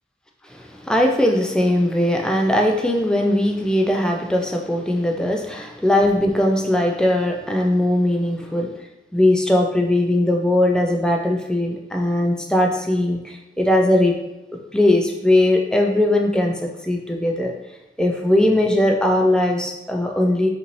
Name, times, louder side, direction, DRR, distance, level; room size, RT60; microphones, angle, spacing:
voice 1, 0.5-8.7 9.1-14.1 14.7-17.5 18.0-20.5, left 1 dB, 5° left, 1 dB, 0.3 m, -19 dB
5.5 x 2.6 x 3.0 m, 0.96 s
head